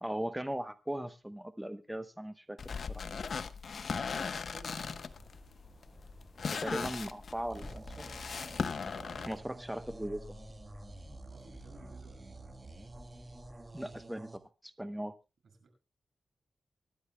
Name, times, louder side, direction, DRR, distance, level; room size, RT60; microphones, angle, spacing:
voice 1, 0.0-2.6 2.9-3.0 6.4-8.0 9.2-10.4 13.7-15.1, right 1 dB, 10° right, 11 dB, 0.9 m, -39 dB
sound 1, 2.6-9.4, left 5 dB, 65° left, 1.0 m, -38 dB
voice 2, 4.4-5.3 11.2-12.5 15.4-15.7, right 3 dB, 70° right, 4 dB, 6.6 m, -56 dB
sound 2, 4.6-14.1, left 1 dB, 10° left, 6.1 m, -54 dB
sound 3, 7.5-14.4, right 2 dB, 35° right, 2.3 m, -50 dB
24.5 x 12.0 x 2.2 m, 0.29 s
cardioid pair, 65°, 0 cm